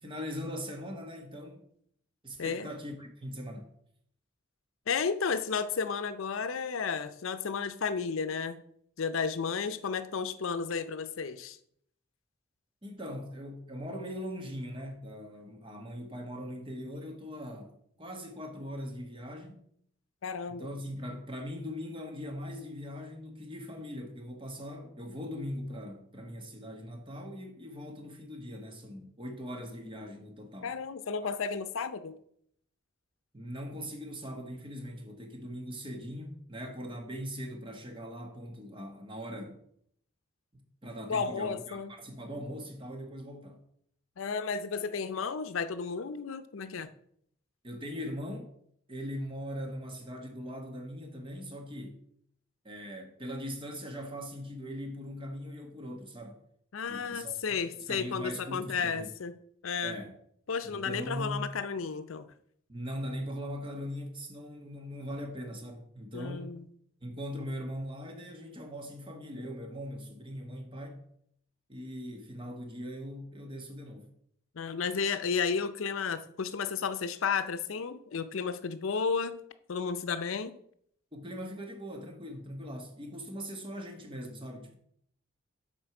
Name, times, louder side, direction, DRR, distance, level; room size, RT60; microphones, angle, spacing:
voice 1, 0.0-1.6 2.2-3.7 12.8-17.7 18.0-19.6 20.5-30.7 33.3-39.6 40.5-43.6 47.6-48.5 48.9-52.0 52.6-56.4 56.9-57.6 57.9-59.1 59.8-60.1 60.6-61.5 62.7-66.5 67.0-71.0 71.7-74.1 81.1-84.7, equal, 25° right, 1.2 m, -40 dB
voice 2, 4.9-8.6 9.0-11.6 20.2-20.7 30.6-32.2 41.1-41.9 44.2-46.9 56.7-59.4 59.6-60.0 60.5-62.3 66.1-66.7 74.6-79.4 79.7-80.6, left 5 dB, 80° left, 0.5 m, -33 dB
7.7 x 4.5 x 5.9 m
head